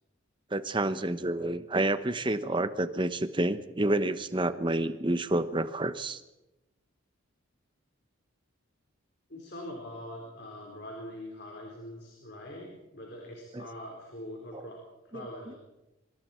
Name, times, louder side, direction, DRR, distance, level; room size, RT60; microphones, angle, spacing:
voice 1, 0.5-6.2 13.5-13.7 15.1-15.2, right 1 dB, 25° right, 12 dB, 1.0 m, -29 dB
voice 2, 9.3-15.6, left 1 dB, 55° left, 0 dB, 4.5 m, -43 dB
25.0 x 25.0 x 4.5 m, 0.97 s
head